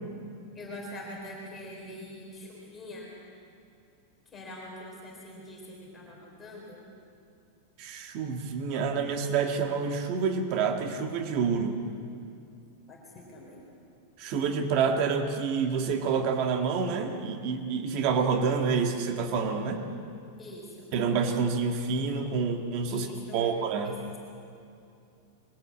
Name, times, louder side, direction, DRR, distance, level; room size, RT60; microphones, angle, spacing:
voice 1, 0.6-3.1 4.3-6.9 12.9-13.6 20.4-20.9 22.9-23.6, left 1 dB, 10° left, -3 dB, 3.9 m, -44 dB
voice 2, 7.8-11.8 14.2-19.8 20.9-23.1 23.3-24.0, right 5 dB, 35° right, 5 dB, 1.7 m, -28 dB
22.5 x 17.0 x 8.6 m, 2.5 s
supercardioid pair, 175°, 0 cm